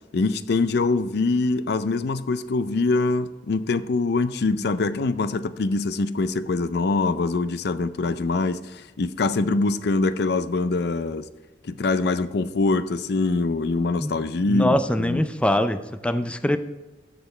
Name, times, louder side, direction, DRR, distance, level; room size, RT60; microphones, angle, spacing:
voice 1, 0.1-11.3 11.6-15.2, left 3 dB, 65° left, 13 dB, 0.5 m, -24 dB
voice 2, 14.5-16.6, left 1 dB, 5° left, 10 dB, 0.4 m, -23 dB
14.5 x 5.0 x 3.2 m, 1.1 s
head